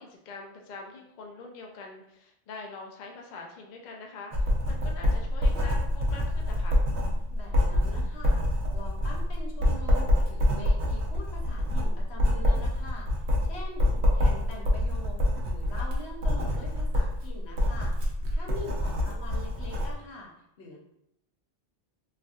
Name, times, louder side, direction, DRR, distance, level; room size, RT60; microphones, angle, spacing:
voice 1, 0.0-6.8 13.8-14.1 18.8-19.0, left 3 dB, 55° left, 1 dB, 0.5 m, -44 dB
Writing, 4.3-19.9, left 1 dB, 85° right, 0.9 m, -26 dB
voice 2, 7.3-8.4 8.7-13.9 14.1-20.3 20.6-20.8, left 2 dB, 75° left, -1 dB, 1.0 m, -44 dB
3.2 x 2.5 x 2.4 m, 0.79 s
omnidirectional pair, 1.1 m